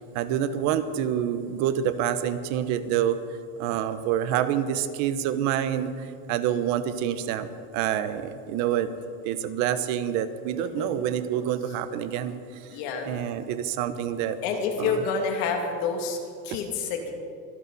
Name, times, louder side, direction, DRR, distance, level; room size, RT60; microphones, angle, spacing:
voice 1, 0.1-3.2 3.6-8.9 9.2-12.4 13.0-14.4 14.8-15.1 16.5-16.6, right 10 dB, 60° right, 12 dB, 1.1 m, -27 dB
voice 2, 10.6-11.0 12.7-13.1 14.4-16.2 16.4-17.1, left 5 dB, 75° left, 2 dB, 2.7 m, -28 dB
24.5 x 12.5 x 4.2 m, 2.3 s
cardioid pair, 165°, 32 cm